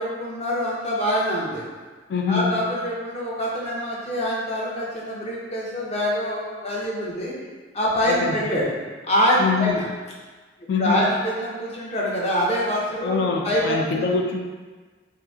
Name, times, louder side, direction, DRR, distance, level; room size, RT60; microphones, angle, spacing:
voice 1, 0.0-1.6 2.3-7.3 7.7-8.7 9.0-9.9 10.8-14.1, equal, 35° left, -4 dB, 0.7 m, -25 dB
voice 2, 2.1-2.5 8.1-8.4 9.4-9.8 10.7-11.1 13.0-14.4, left 5 dB, 65° left, 2 dB, 0.3 m, -24 dB
2.8 x 2.5 x 3.5 m, 1.4 s
head